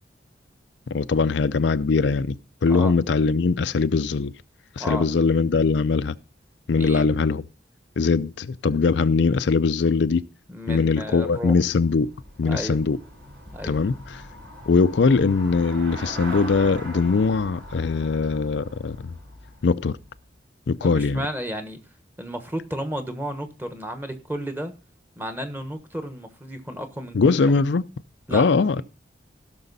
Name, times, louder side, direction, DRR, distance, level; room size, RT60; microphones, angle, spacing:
voice 1, 0.9-2.3 2.6-4.3 4.8-6.1 6.7-7.4 8.0-10.2 10.7-12.1 12.4-13.0 13.6-13.9 14.7-19.1 19.6-20.0 20.7-21.2 27.1-27.8 28.3-28.8, left 4 dB, 70° left, 0.5 m, -21 dB
voice 2, 4.8-5.1 6.7-7.2 10.5-11.6 12.4-12.8 13.5-13.8 20.8-21.8 22.2-24.7 25.2-27.4 28.3-28.8, equal, 10° right, 1.2 m, -33 dB
Traffic noise roadway noise / Bicycle, 11.5-20.3, equal, 65° right, 4.4 m, -40 dB
16.5 x 6.2 x 4.0 m
head